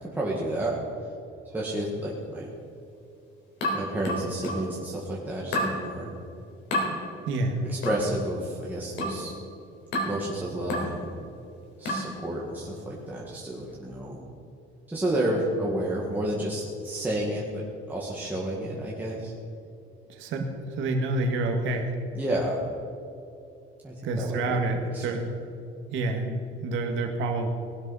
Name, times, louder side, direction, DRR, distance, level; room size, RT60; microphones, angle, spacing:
voice 1, 0.0-0.7 1.5-2.5 3.7-6.1 7.7-9.3 10.0-11.1 11.8-14.2 14.9-19.3 22.1-22.6 23.8-24.6 24.9-25.2, right 1 dB, 10° right, -5 dB, 1.8 m, -31 dB
sound 1, 3.6-4.7 5.5-5.8 6.7-6.9 7.8-8.1 9.0-9.3 9.9-10.2 10.7-11.0 11.8-12.1, left 1 dB, 60° left, 3.9 m, -29 dB
voice 2, 7.3-7.6 20.1-21.9 24.0-25.3 25.9-27.5, right 2 dB, 70° right, 3 dB, 1.8 m, -28 dB
19.0 x 12.0 x 4.2 m, 2.7 s
cardioid pair, 145°, 21 cm